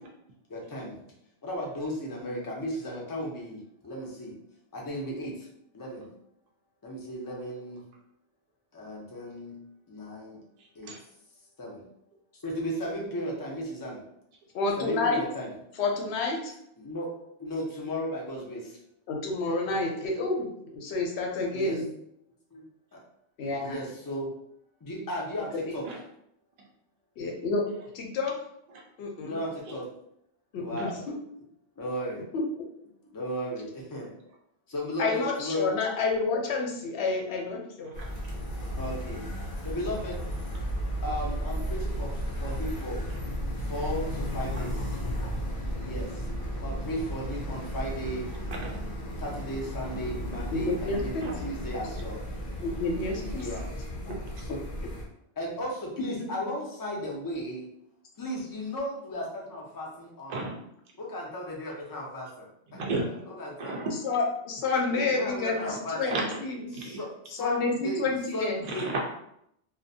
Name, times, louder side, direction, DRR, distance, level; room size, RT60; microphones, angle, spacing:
voice 1, 0.5-1.0 1.4-4.4 4.7-5.5 5.7-6.1 6.8-7.8 8.7-9.5 9.9-10.4 10.7-10.9 11.6-11.8 12.3-14.0 14.8-15.5 16.8-17.1 17.4-18.8 21.5-21.8 22.5-23.0 23.5-24.3 24.8-25.8 29.2-29.8 30.6-31.0 31.8-32.2 33.1-34.1 34.7-35.8 38.8-39.2 39.6-40.2 41.0-43.0 43.6-45.0 45.8-46.3 46.6-48.3 49.2-52.2 53.2-53.7 54.4-54.6 55.4-57.7 58.2-60.5 61.0-63.9 64.9-66.0 66.7-68.9, equal, 30° left, -2 dB, 0.4 m, -35 dB
voice 2, 14.5-15.2 15.8-16.5 19.1-21.9 23.4-23.8 27.2-27.6 27.9-28.3 29.0-29.4 30.5-31.2 32.3-32.4 35.0-37.9 50.5-51.2 52.6-53.5 54.0-54.1 56.2-56.3 64.0-66.7 67.4-68.6, left 3 dB, 85° left, 1 dB, 0.9 m, -29 dB
sound 1, 37.9-55.1, equal, 55° left, 0.8 m, -34 dB
voice 3, 62.7-63.1 63.6-63.9 66.1-66.4 66.7-67.0 68.8-69.0, right 2 dB, 55° right, -1 dB, 0.5 m, -33 dB
2.4 x 2.1 x 2.6 m, 0.74 s
omnidirectional pair, 1.1 m